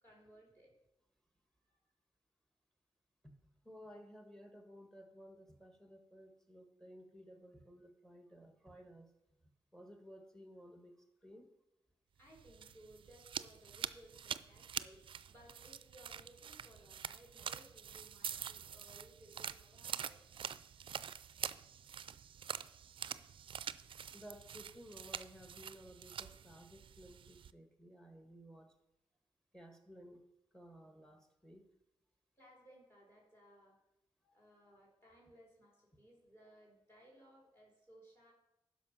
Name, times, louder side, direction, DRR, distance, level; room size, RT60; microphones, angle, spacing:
voice 1, 0.0-0.7 12.2-20.2 32.4-33.8 34.3-38.3, right 1 dB, 25° left, -2 dB, 3.3 m, -62 dB
voice 2, 3.6-9.1 9.7-11.5 24.1-28.7 29.5-30.2 30.5-31.7 34.2-34.4, equal, 5° left, 6 dB, 1.7 m, -56 dB
sound 1, 12.3-27.5, right 8 dB, 65° right, 0.4 m, -46 dB
12.0 x 5.1 x 5.7 m, 0.89 s
cardioid pair, 75°, 9 cm